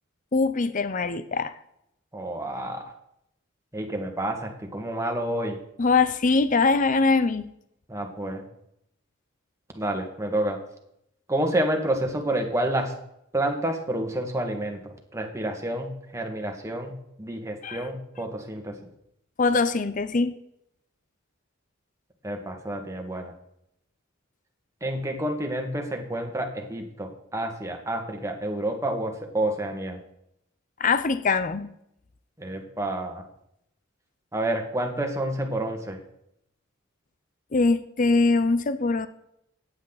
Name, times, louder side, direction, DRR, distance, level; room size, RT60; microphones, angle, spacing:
voice 1, 0.3-1.5 5.8-7.5 17.6-17.9 19.4-20.3 30.8-31.7 37.5-39.1, left 3 dB, 40° left, 12 dB, 0.6 m, -22 dB
voice 2, 2.1-2.8 3.7-5.6 7.9-8.4 9.8-10.6 11.3-12.9 13.3-18.8 22.2-23.3 24.8-30.0 32.4-33.2 34.3-36.0, right 1 dB, 15° right, 3 dB, 1.8 m, -29 dB
15.0 x 9.8 x 4.1 m, 0.77 s
head